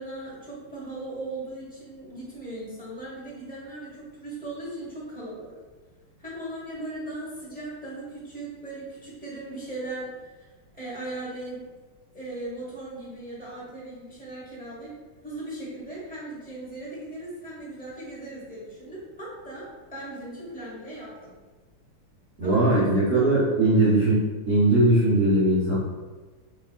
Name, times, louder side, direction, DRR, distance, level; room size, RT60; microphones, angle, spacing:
voice 1, 0.0-5.5 6.2-10.5 10.7-11.6 12.1-14.9 15.2-21.3 22.4-23.6, right 2 dB, 5° left, -7 dB, 1.0 m, -38 dB
voice 2, 22.4-25.8, right 1 dB, 60° right, -10 dB, 0.7 m, -20 dB
4.7 x 2.9 x 2.5 m, 1.4 s
omnidirectional pair, 2.4 m